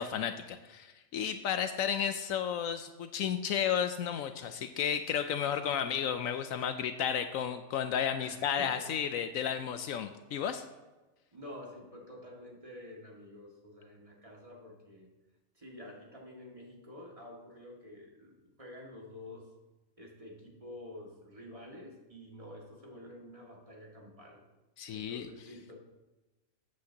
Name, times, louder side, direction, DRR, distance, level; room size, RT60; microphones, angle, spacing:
voice 1, 0.0-10.6 24.8-25.3, left 8 dB, 75° left, 9 dB, 1.0 m, -33 dB
voice 2, 8.2-8.9 11.3-15.1 15.6-19.5 20.0-24.4 24.9-25.7, left 1 dB, 25° right, -2 dB, 2.1 m, -49 dB
14.0 x 8.3 x 2.9 m, 1.1 s
omnidirectional pair, 1.5 m